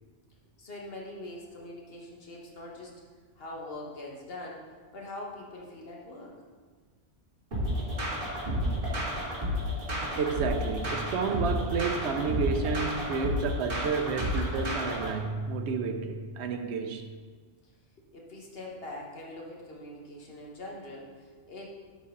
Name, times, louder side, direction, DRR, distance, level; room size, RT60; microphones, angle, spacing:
voice 1, 0.6-2.9 3.4-6.4 17.6-17.7 18.0-21.7, left 1 dB, 55° left, 1.5 m, -43 dB
sound 1, 7.5-15.1, equal, 50° right, 1.9 m, -31 dB
voice 2, 10.2-17.1, right 5 dB, 75° right, 0.9 m, -31 dB
11.0 x 4.1 x 3.8 m
omnidirectional pair, 1.2 m